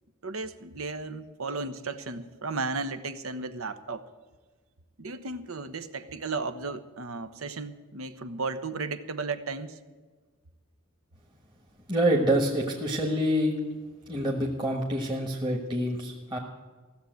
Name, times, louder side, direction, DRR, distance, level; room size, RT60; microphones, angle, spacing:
voice 1, 0.2-4.0 5.0-9.8, right 3 dB, 80° right, 11 dB, 0.9 m, -34 dB
voice 2, 11.9-13.5 14.1-16.4, equal, 20° right, -1 dB, 1.4 m, -26 dB
15.5 x 7.1 x 9.1 m, 1.4 s
head